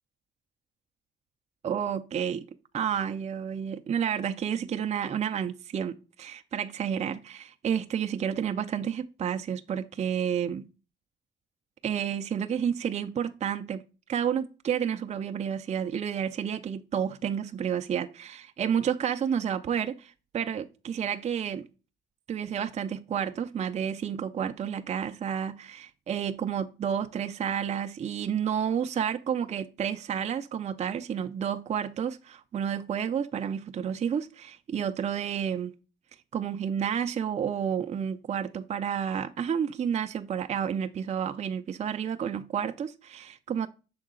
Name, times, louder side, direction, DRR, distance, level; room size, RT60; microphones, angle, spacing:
voice 1, 1.6-2.4 2.7-10.7 11.8-13.8 14.1-21.7 22.3-35.7 36.3-43.7, right 8 dB, 35° right, 0.5 m, -30 dB
6.5 x 3.8 x 3.8 m
cardioid pair, 100°, 20 cm